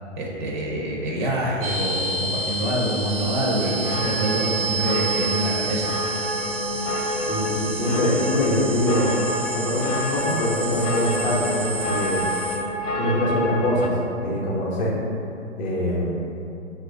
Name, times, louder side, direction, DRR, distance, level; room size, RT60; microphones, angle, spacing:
voice 1, 0.2-5.9, right 1 dB, 40° right, -3 dB, 0.6 m, -26 dB
sound 1, 1.6-12.6, right 3 dB, 80° right, 1.0 m, -30 dB
sound 2, 3.6-13.9, left 1 dB, 90° left, 0.5 m, -29 dB
voice 2, 7.3-9.2 9.5-12.3 12.9-14.0 14.2-14.9 15.6-16.2, left 1 dB, 35° left, -4 dB, 0.6 m, -23 dB
3.0 x 2.4 x 3.6 m, 2.7 s
hypercardioid pair, 130°, 37 cm